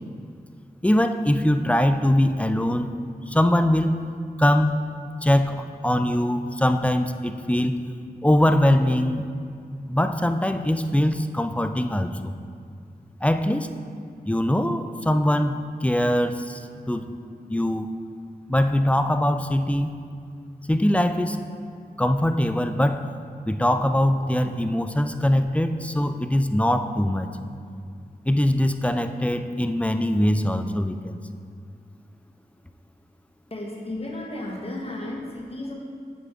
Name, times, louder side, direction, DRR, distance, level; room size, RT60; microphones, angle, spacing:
voice 1, 0.8-3.0 3.3-4.0 4.4-4.9 5.2-7.8 8.2-9.2 9.9-12.3 13.2-13.7 14.3-17.1 17.5-17.9 18.5-19.9 20.7-21.4 22.0-23.1 23.5-27.3 28.3-31.2, left 1 dB, 10° left, 8 dB, 0.3 m, -22 dB
voice 2, 33.5-35.7, left 1 dB, 35° left, -1 dB, 1.1 m, -33 dB
7.4 x 5.7 x 3.5 m, 2.2 s
wide cardioid pair, 55°, 17 cm